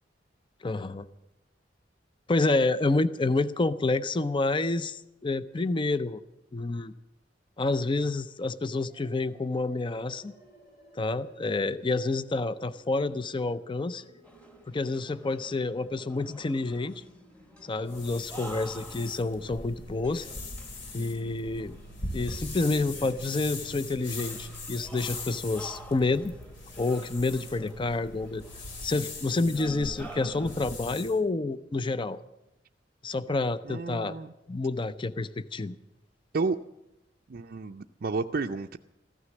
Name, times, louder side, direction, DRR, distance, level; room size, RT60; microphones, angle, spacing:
voice 1, 0.6-1.1 2.3-6.2 6.5-6.9 7.6-10.3 11.0-14.0 14.7-17.0 17.6-20.3 20.9-21.8 22.1-26.3 26.8-28.4 28.8-32.2 33.0-34.2 34.5-35.8, left 3 dB, 30° left, 14 dB, 0.5 m, -28 dB
sound 1, 8.9-23.8, equal, 65° left, 5.7 m, -56 dB
sound 2, 14.2-30.9, right 1 dB, 10° left, 1.3 m, -50 dB
sound 3, 17.9-31.2, left 2 dB, 80° left, 2.3 m, -41 dB
voice 2, 33.7-34.3 36.3-36.6 37.3-38.8, right 4 dB, 55° right, 3 dB, 0.5 m, -31 dB
15.0 x 13.0 x 7.2 m, 0.89 s
head